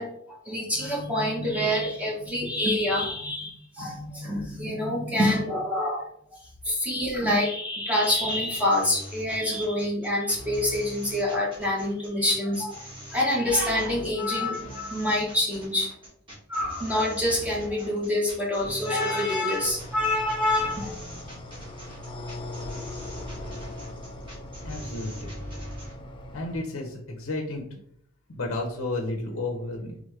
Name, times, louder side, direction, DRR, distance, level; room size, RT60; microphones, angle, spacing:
voice 1, 0.0-6.4 6.6-12.8 13.1-15.9 16.5-20.9, left 1 dB, 5° right, -3 dB, 1.0 m, -26 dB
sound 1, 8.0-25.9, equal, 25° right, 1.7 m, -42 dB
sound 2, 19.6-26.6, left 1 dB, 25° left, 0.5 m, -40 dB
voice 2, 24.6-25.3 26.3-27.8 28.3-30.0, left 2 dB, 60° left, 1 dB, 0.7 m, -32 dB
3.6 x 3.5 x 3.3 m, 0.65 s
head